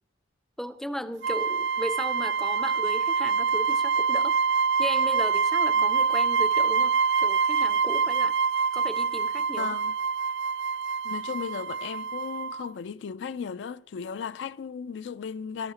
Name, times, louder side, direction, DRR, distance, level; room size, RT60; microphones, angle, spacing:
voice 1, 0.6-4.4 4.8-8.4 8.7-9.8, equal, ahead, 0.4 m, -36 dB
sound 1, 1.2-12.7, right 5 dB, 70° right, 0.3 m, -25 dB
voice 2, 9.6-10.0 11.0-15.7, left 6 dB, 80° left, 0.4 m, -36 dB
17.5 x 13.5 x 2.9 m
head